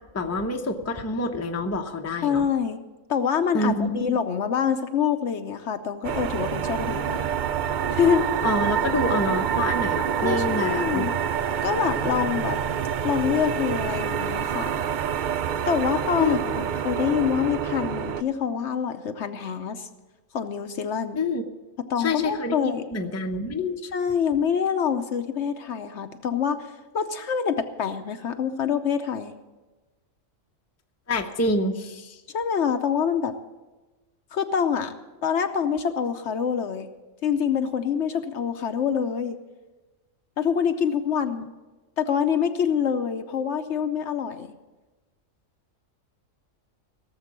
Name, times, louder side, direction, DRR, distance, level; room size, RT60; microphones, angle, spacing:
voice 1, 0.1-2.5 3.5-4.2 8.4-11.1 16.2-16.4 21.2-21.5 22.0-23.8 31.1-32.2, left 2 dB, 15° left, 4 dB, 0.7 m, -27 dB
voice 2, 2.2-2.8 3.1-7.3 7.9-8.2 10.2-11.2 11.6-12.6 13.0-14.7 15.7-19.9 20.3-21.2 21.9-22.9 23.9-29.3 32.3-33.3 34.3-34.9 35.2-36.9 37.2-39.4 40.4-41.5 42.0-44.5, left 7 dB, 60° left, 8 dB, 1.0 m, -26 dB
sound 1, 6.0-18.2, right 8 dB, 70° right, 0.4 m, -27 dB
17.0 x 7.3 x 7.4 m, 1.2 s
omnidirectional pair, 1.4 m